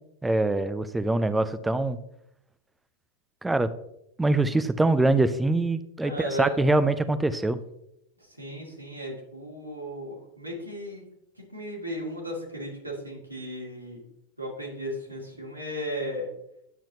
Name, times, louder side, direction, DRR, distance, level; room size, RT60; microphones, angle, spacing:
voice 1, 0.2-2.0 3.4-3.7 4.2-7.6, right 2 dB, 5° right, 13 dB, 0.5 m, -24 dB
voice 2, 6.0-6.6 8.2-11.1 11.3-14.0 14.4-16.3, equal, 90° right, -4 dB, 2.2 m, -35 dB
10.0 x 7.3 x 2.7 m, 0.79 s
figure-of-eight pair, 90°, 0 cm